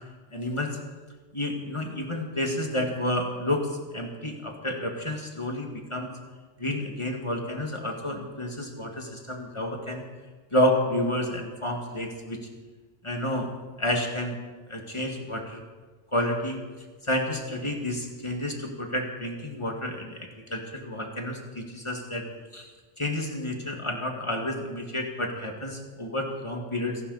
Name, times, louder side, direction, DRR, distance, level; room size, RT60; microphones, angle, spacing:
voice 1, 0.3-0.8 1.3-6.1 6.6-10.0 10.5-12.5 13.0-13.5 13.8-14.4 14.7-15.6 16.1-16.6 17.0-20.2 20.5-22.3 22.5-22.7 23.0-27.0, left 1 dB, 25° left, 2 dB, 2.1 m, -30 dB
27.5 x 11.5 x 4.2 m, 1.3 s
omnidirectional pair, 1.3 m